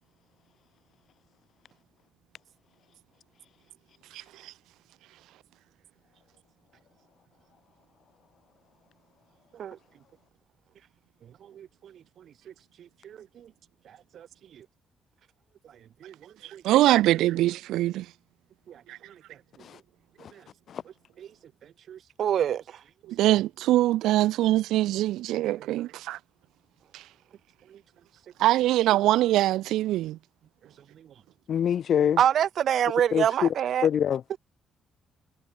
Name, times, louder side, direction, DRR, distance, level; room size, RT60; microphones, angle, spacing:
voice 1, 4.1-4.5 16.4-18.1 18.9-19.0 23.1-26.2 26.9-27.0 28.4-30.2, right 15 dB, 90° right, 0.5 m, -23 dB
voice 2, 11.4-12.0 12.5-12.6 12.8-13.5 13.9-14.3 14.5-14.7 16.0-16.6 18.7-18.8 19.1-19.2 20.3-20.4 21.2-21.3 21.9-22.8 27.7-27.8 31.0-31.1 32.2-33.9, right 9 dB, 65° right, 3.5 m, -28 dB
voice 3, 31.5-32.2 33.1-33.5 33.8-34.2, left 9 dB, 60° left, 4.7 m, -25 dB
cardioid pair, 90°, 0 cm